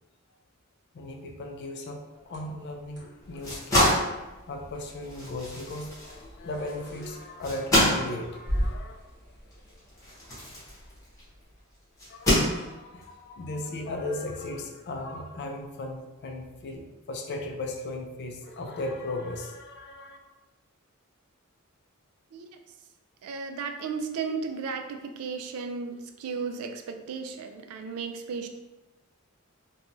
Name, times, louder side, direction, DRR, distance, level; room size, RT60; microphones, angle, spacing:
voice 1, 0.9-4.0 4.5-8.9 12.1-20.2, left 2 dB, 50° left, 3 dB, 0.4 m, -37 dB
sound 1, 2.1-10.4, equal, 55° right, 1.0 m, -39 dB
sound 2, 3.2-11.3 12.0-13.0, left 1 dB, 15° left, 1.0 m, -28 dB
voice 2, 23.2-28.5, right 5 dB, 85° right, 6 dB, 0.3 m, -34 dB
2.9 x 2.2 x 2.5 m, 1.1 s
head